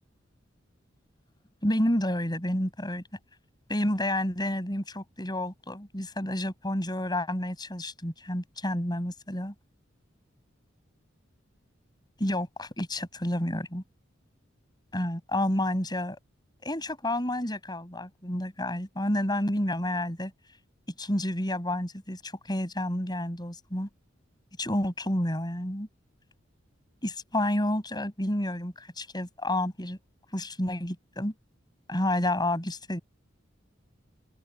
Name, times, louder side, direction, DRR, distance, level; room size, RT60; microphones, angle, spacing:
voice 1, 1.6-3.0 3.7-9.5 12.2-13.8 14.9-16.2 16.6-20.3 21.0-23.9 24.6-25.9 27.0-30.0 30.3-31.3 31.9-33.0, left 1 dB, 20° left, 6.2 m, -30 dB
open air
head